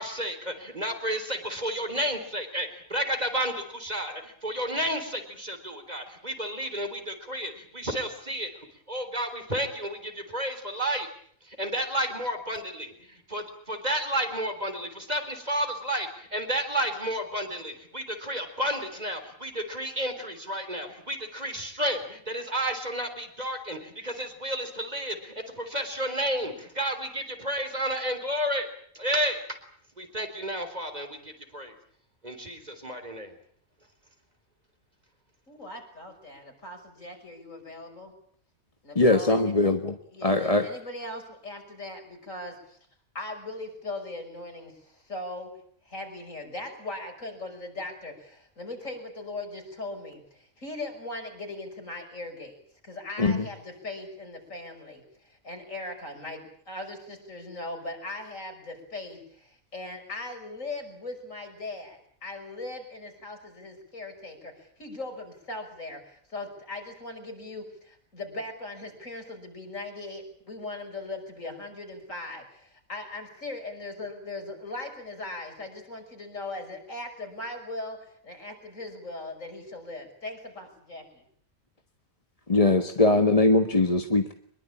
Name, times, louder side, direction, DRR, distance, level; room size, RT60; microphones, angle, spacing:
voice 1, 0.0-11.1 11.4-28.7 28.9-29.4 30.0-31.7 32.2-33.3, equal, 30° right, 7 dB, 3.9 m, -31 dB
voice 2, 35.5-38.1 38.8-39.7 40.1-42.8 43.1-45.5 45.8-81.2, left 2 dB, 65° left, 5 dB, 6.1 m, -39 dB
voice 3, 38.9-40.0 40.2-40.7 53.2-53.4 82.5-84.3, left 2 dB, 25° left, 6 dB, 1.4 m, -21 dB
24.5 x 22.0 x 8.7 m, 0.63 s
omnidirectional pair, 1.5 m